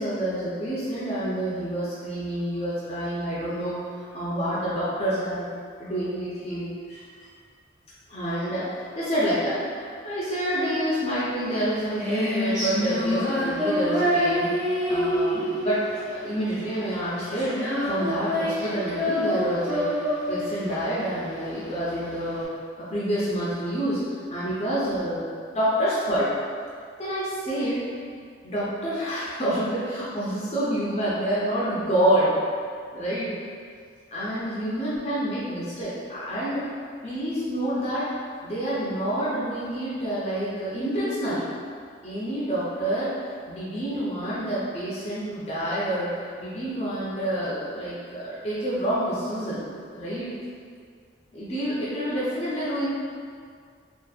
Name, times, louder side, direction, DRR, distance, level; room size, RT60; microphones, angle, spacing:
voice 1, 0.0-3.8 4.1-5.5 5.8-7.3 8.1-14.5 14.9-20.0 20.3-22.5 22.8-26.3 27.0-27.9 28.4-32.4 32.9-33.3 34.1-36.6 37.0-38.1 38.4-41.5 42.0-43.2 43.5-49.6 49.9-50.3 51.3-52.9, right 1 dB, 35° left, -9 dB, 0.5 m, -28 dB
Female singing, 11.5-22.4, equal, 5° right, 0.9 m, -26 dB
2.6 x 2.5 x 2.3 m, 2.1 s
head